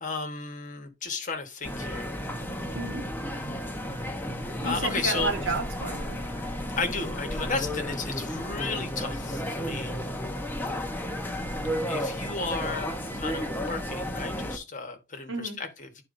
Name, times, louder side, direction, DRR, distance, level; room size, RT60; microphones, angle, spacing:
voice 1, 0.0-2.1 4.6-5.4 6.8-10.1 11.9-16.0, left 4 dB, 40° left, 1.3 m, -33 dB
sound 1, 1.6-14.6, equal, 10° left, 0.9 m, -33 dB
voice 2, 2.7-3.0 4.6-6.2 15.3-15.6, right 3 dB, 60° right, 1.5 m, -31 dB
12.0 x 4.4 x 2.6 m
head